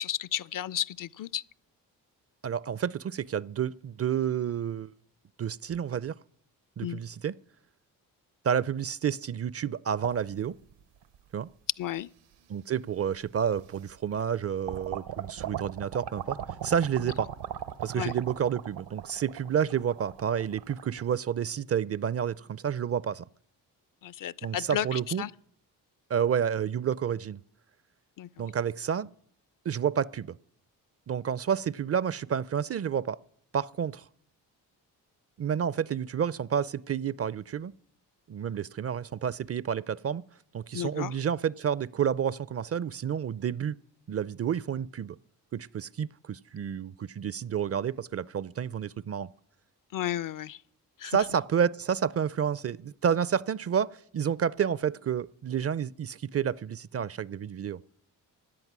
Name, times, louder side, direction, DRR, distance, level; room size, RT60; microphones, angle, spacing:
voice 1, 0.0-1.4 6.8-7.0 11.8-12.1 17.9-18.1 24.0-25.3 28.2-28.4 40.7-41.1 49.9-50.6 51.0-51.2, left 11 dB, 50° left, 0.5 m, -33 dB
voice 2, 2.4-4.9 5.4-6.2 6.8-7.3 8.4-10.5 11.3-11.5 12.5-17.3 17.8-23.2 24.4-25.2 26.1-27.4 28.4-29.1 29.7-30.4 31.1-33.2 33.5-34.0 35.4-37.7 38.3-40.2 40.5-43.8 44.1-45.2 45.5-49.3 51.0-57.8, right 8 dB, 35° right, 0.5 m, -30 dB
sound 1, 10.0-11.2 11.9-12.0 13.2-13.3 13.7-14.3 14.6-21.1, right 9 dB, 75° right, 0.9 m, -39 dB
16.5 x 10.5 x 6.0 m
supercardioid pair, 50°, 42 cm